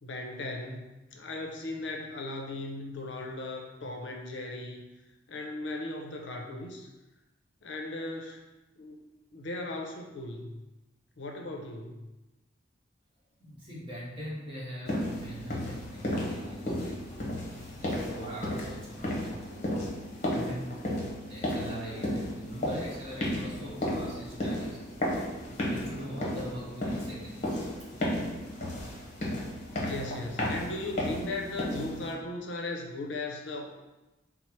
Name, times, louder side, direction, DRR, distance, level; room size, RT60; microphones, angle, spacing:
voice 1, 0.0-4.8 5.3-6.9 7.6-8.4 8.8-9.0 9.3-10.6 11.2-12.0 29.8-33.6, left 2 dB, 70° left, 1 dB, 0.6 m, -37 dB
voice 2, 13.4-17.3 17.6-19.8 20.3-20.7 21.3-24.8 25.7-27.6, equal, 30° right, -6 dB, 1.1 m, -42 dB
sound 1, 14.9-32.1, left 1 dB, 40° left, 0.8 m, -34 dB
4.4 x 2.0 x 4.3 m, 1.0 s
head